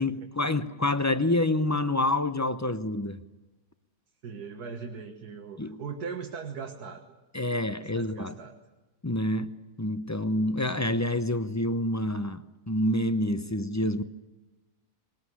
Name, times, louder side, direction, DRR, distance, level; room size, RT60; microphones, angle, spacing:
voice 1, 0.0-3.2 5.6-5.8 7.3-8.3 9.0-14.0, left 1 dB, 25° left, 11 dB, 0.3 m, -27 dB
voice 2, 4.2-7.1 7.7-8.6, right 5 dB, 75° right, 3 dB, 2.0 m, -39 dB
20.5 x 20.0 x 9.7 m, 1.1 s
omnidirectional pair, 1.7 m